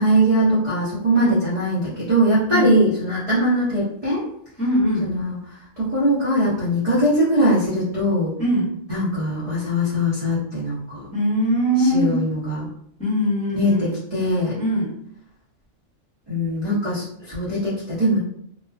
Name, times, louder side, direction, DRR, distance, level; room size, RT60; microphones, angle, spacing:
voice 1, 0.0-4.2 5.0-5.4 5.8-8.3 8.9-11.1 11.8-12.7 13.5-14.6 16.3-18.2, equal, 30° right, -12 dB, 0.9 m, -21 dB
voice 2, 4.6-5.1 8.4-8.7 11.1-12.3 13.0-14.0 14.6-14.9, equal, 5° left, -8 dB, 1.0 m, -21 dB
3.0 x 2.2 x 2.4 m, 0.70 s
omnidirectional pair, 1.4 m